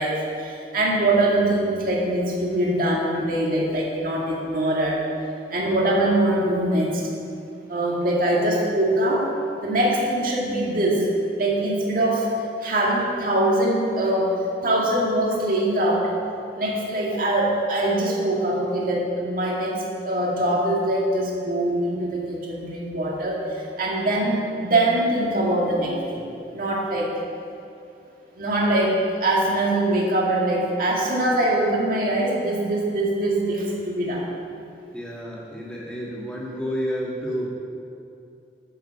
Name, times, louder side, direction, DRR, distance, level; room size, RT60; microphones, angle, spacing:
voice 1, 0.0-5.0 5.5-7.0 7.7-9.3 9.6-11.1 11.4-12.3 12.6-14.4 14.6-16.1 16.5-27.1 28.4-34.3, right 1 dB, 55° right, -3 dB, 2.1 m, -23 dB
voice 2, 34.9-37.5, equal, 5° left, -5 dB, 2.2 m, -30 dB
10.0 x 7.0 x 7.0 m, 2.6 s
head